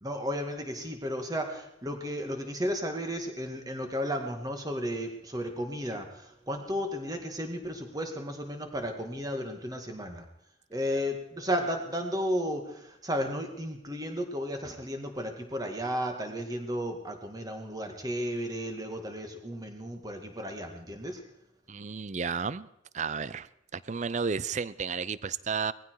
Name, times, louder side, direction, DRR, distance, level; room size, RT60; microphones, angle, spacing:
voice 1, 0.0-10.3 10.7-21.2, equal, 20° right, 4 dB, 2.0 m, -34 dB
voice 2, 21.7-22.7 22.9-23.5 23.7-25.7, right 5 dB, 40° right, 18 dB, 0.5 m, -32 dB
19.0 x 15.0 x 4.7 m, 0.80 s
head